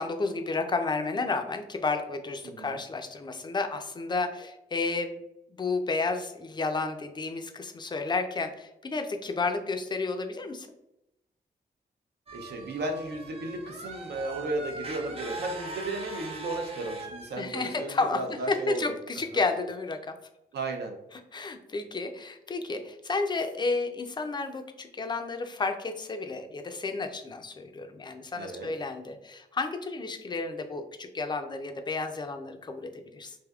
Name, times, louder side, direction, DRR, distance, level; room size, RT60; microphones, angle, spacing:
voice 1, 0.0-5.2 5.6-10.7 17.4-20.1 21.3-33.4, left 3 dB, 25° left, 6 dB, 0.4 m, -31 dB
voice 2, 2.4-2.8 12.3-18.8 20.5-20.9 28.3-28.7, right 2 dB, 75° right, 3 dB, 0.6 m, -34 dB
sound 1, 12.3-17.4, right 2 dB, 35° right, 0.6 m, -40 dB
3.3 x 2.6 x 2.3 m, 0.86 s
wide cardioid pair, 105°, 17 cm